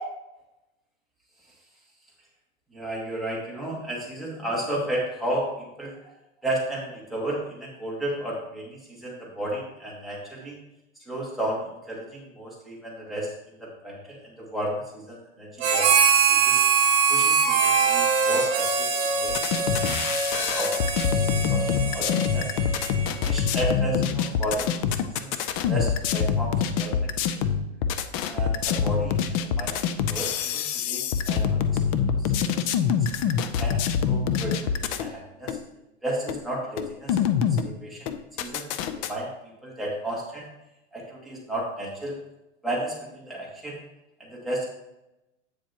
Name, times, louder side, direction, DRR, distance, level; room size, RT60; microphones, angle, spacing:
voice 1, 2.7-6.1 6.4-10.6 11.1-13.3 13.6-15.9 16.3-16.6 17.1-19.9 20.3-22.5 23.1-24.7 25.0-25.4 25.7-27.5 28.3-32.9 33.6-35.6 36.0-38.1 38.4-38.7 39.0-39.3 39.6-40.5 40.9-42.2 42.6-43.8 44.2-44.7, right 1 dB, ahead, -5 dB, 2.1 m, -33 dB
Harmonica, 15.6-23.3, right 5 dB, 40° right, 2.4 m, -23 dB
sound 1, 19.3-35.1 35.5-35.6 36.3-36.4 36.8-37.7 38.1-39.1, left 7 dB, 30° left, 0.4 m, -25 dB
8.7 x 7.2 x 2.9 m, 0.90 s
supercardioid pair, 140°, 38 cm